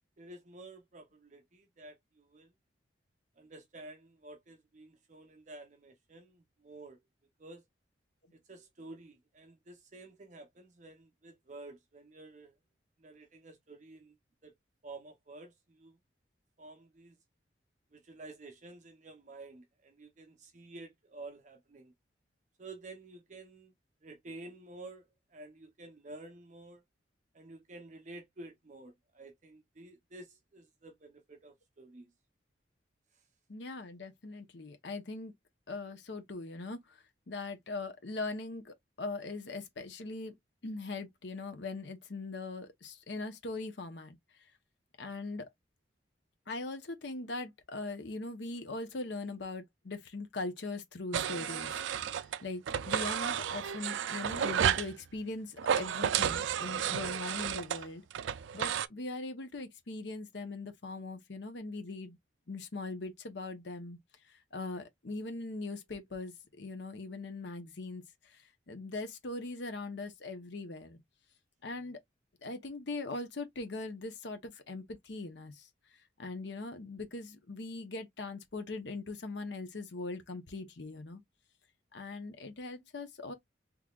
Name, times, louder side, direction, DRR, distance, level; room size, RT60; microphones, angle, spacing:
voice 1, 0.2-2.5 3.4-7.0 7.4-7.6 8.3-12.5 13.0-14.2 14.4-14.5 14.8-16.0 16.6-17.2 17.9-21.9 22.6-23.7 24.0-26.8 27.3-32.1 33.1-33.2, right 2 dB, 40° right, 0.7 m, -51 dB
voice 2, 33.5-35.3 35.7-37.0 37.3-40.4 40.6-44.2 45.0-45.5 46.5-52.1 52.4-58.0 58.5-62.2 62.5-64.0 64.3-71.0 71.6-72.0 72.4-75.7 76.2-81.2 81.9-83.3, left 3 dB, 70° left, 0.8 m, -41 dB
sound 1, 51.1-52.4 52.7-54.9 55.6-58.9, right 9 dB, 80° right, 0.3 m, -32 dB
3.7 x 3.1 x 2.3 m
head